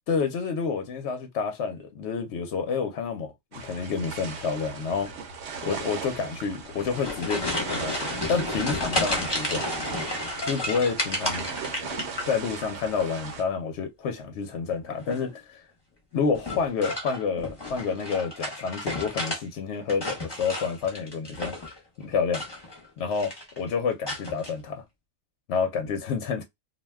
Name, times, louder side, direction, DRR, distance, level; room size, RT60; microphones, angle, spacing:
voice 1, 0.1-5.1 5.6-9.6 10.5-11.5 12.3-15.6 16.1-21.5 22.0-22.4 23.0-24.8 25.5-26.4, left 5 dB, 65° left, 0.8 m, -29 dB
sound 1, 3.5-13.4, right 5 dB, 65° right, 0.9 m, -37 dB
sound 2, 6.6-12.7 13.0-13.5 14.9-15.3 16.3-19.4 19.7-21.8 22.2-22.8 23.1-23.6 24.1-24.5, left 2 dB, 20° left, 0.8 m, -32 dB
2.5 x 2.1 x 3.3 m
omnidirectional pair, 1.3 m